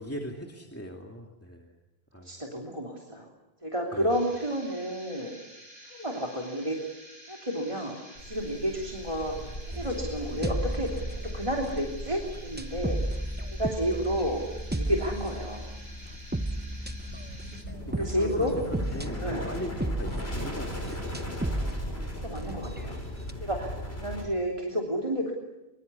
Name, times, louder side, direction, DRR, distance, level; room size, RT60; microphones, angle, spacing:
voice 1, 0.0-1.8 2.1-2.4 3.9-4.1 17.8-21.6, equal, 15° left, 0 dB, 2.6 m, -39 dB
voice 2, 2.2-3.2 3.6-5.3 5.9-6.9 7.3-9.3 9.8-13.0 13.6-14.4 14.7-15.7 17.9-18.5 19.2-19.5 22.2-23.0 23.4-25.3, equal, 30° right, 0 dB, 3.2 m, -31 dB
sound 1, 4.1-17.6, equal, 75° right, 6.4 m, -50 dB
sound 2, 8.2-24.2, equal, 80° left, 7.4 m, -39 dB
sound 3, 9.7-12.0 12.6-22.9 23.3-23.4, right 1 dB, 10° right, 0.9 m, -34 dB
24.5 x 24.0 x 8.4 m, 1.0 s
omnidirectional pair, 1.1 m